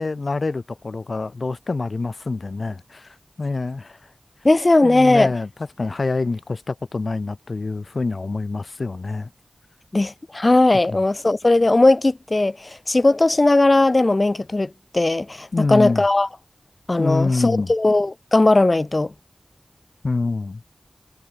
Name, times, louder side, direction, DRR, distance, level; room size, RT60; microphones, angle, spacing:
voice 1, 0.0-4.0 4.8-5.5 5.8-9.3 10.9-11.0 15.5-16.0 17.0-17.7 20.0-20.6, left 3 dB, 65° left, 1.5 m, -26 dB
voice 2, 4.4-5.3 9.9-16.3 16.9-19.1, left 2 dB, 45° left, 0.7 m, -18 dB
wide cardioid pair, 55°, 0 cm